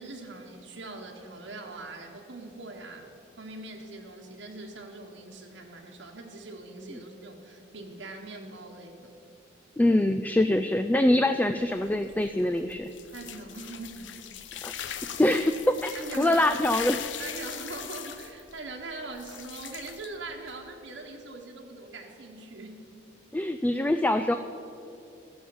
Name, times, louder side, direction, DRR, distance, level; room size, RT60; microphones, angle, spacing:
voice 1, 0.0-3.1 3.4-9.1 13.1-14.1 15.9-16.4 17.2-22.8, right 2 dB, 70° right, 1 dB, 1.2 m, -42 dB
voice 2, 9.8-12.9 14.6-14.7 15.2-15.9 16.2-17.1 23.3-24.4, left 1 dB, 10° left, 8 dB, 0.3 m, -24 dB
sound 1, 11.6-20.7, left 9 dB, 75° left, 0.7 m, -41 dB
14.0 x 7.2 x 7.7 m, 2.6 s
head